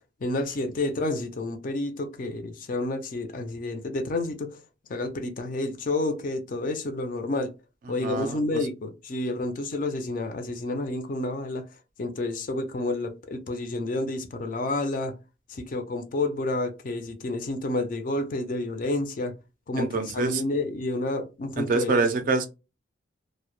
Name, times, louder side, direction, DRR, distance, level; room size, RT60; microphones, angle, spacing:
voice 1, 0.2-4.6 4.9-7.5 7.9-11.6 12.0-15.1 15.5-19.3 19.7-22.0, left 2 dB, 45° left, 0.4 m, -30 dB
voice 2, 8.0-8.6 19.8-20.4 21.6-22.5, right 3 dB, 45° right, 0.3 m, -26 dB
2.1 x 2.0 x 3.0 m
head